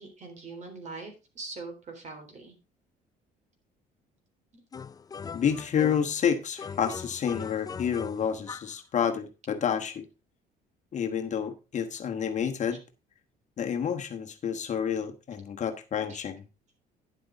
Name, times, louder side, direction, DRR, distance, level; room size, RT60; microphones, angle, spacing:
voice 1, 0.0-2.5 4.5-4.6, right 3 dB, 45° right, 3.6 m, -42 dB
sound 1, 4.7-6.2 6.6-8.8, left 6 dB, 20° left, 0.4 m, -40 dB
voice 2, 5.3-10.1 10.9-12.8 13.6-16.4, left 7 dB, 45° left, 1.3 m, -29 dB
10.5 x 7.6 x 3.8 m
cardioid pair, 110°, 17 cm